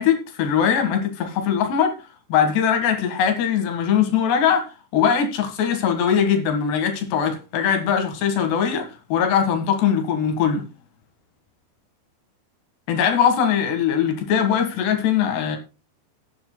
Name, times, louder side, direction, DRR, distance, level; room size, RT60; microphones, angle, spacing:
voice 1, 0.0-1.9 2.3-10.7 12.9-15.6, left 8 dB, 70° left, 3.6 m, -21 dB
17.5 x 9.4 x 2.2 m
omnidirectional pair, 5.3 m